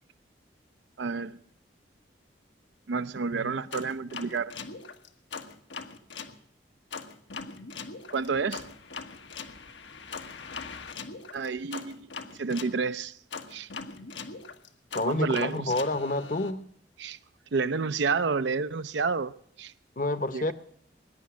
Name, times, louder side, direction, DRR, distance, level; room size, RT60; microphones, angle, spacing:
voice 1, 1.0-1.4 2.9-4.5 8.1-8.7 11.3-12.1 12.3-13.2 13.5-13.7 15.0-15.7 17.0-17.2 17.5-19.3 19.6-19.7 20.3-20.5, right 4 dB, 75° right, 0.5 m, -29 dB
sound 1, 3.7-6.4 6.9-12.8 13.3-16.5, left 5 dB, 85° left, 1.4 m, -41 dB
voice 2, 14.9-16.6 20.0-20.5, left 2 dB, 45° left, 0.9 m, -29 dB
20.5 x 10.5 x 6.2 m
head